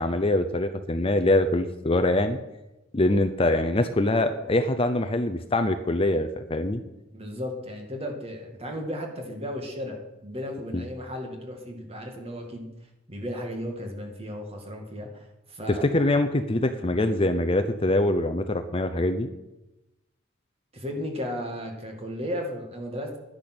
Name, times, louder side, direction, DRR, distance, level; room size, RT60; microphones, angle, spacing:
voice 1, 0.0-2.4 2.9-6.8 10.7-10.8 15.7-19.3, left 1 dB, 30° left, 9 dB, 0.6 m, -24 dB
voice 2, 7.1-12.7 13.1-15.9 20.7-23.2, equal, 30° right, 3 dB, 2.0 m, -35 dB
10.5 x 10.5 x 6.1 m, 0.96 s
head